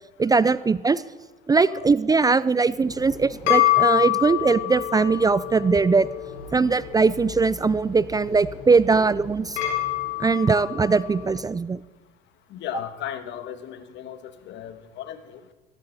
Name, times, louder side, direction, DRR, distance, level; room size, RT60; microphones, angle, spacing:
voice 1, 0.2-1.0 1.5-6.1 6.5-9.6 10.2-11.8, right 4 dB, 20° right, 17 dB, 0.4 m, -20 dB
sound 1, 2.8-11.3, left 14 dB, 75° left, 4.2 m, -27 dB
voice 2, 12.5-14.2 14.5-15.4, left 10 dB, 60° left, 10 dB, 1.7 m, -36 dB
17.0 x 14.5 x 4.2 m, 1.2 s
supercardioid pair, 85°, 21 cm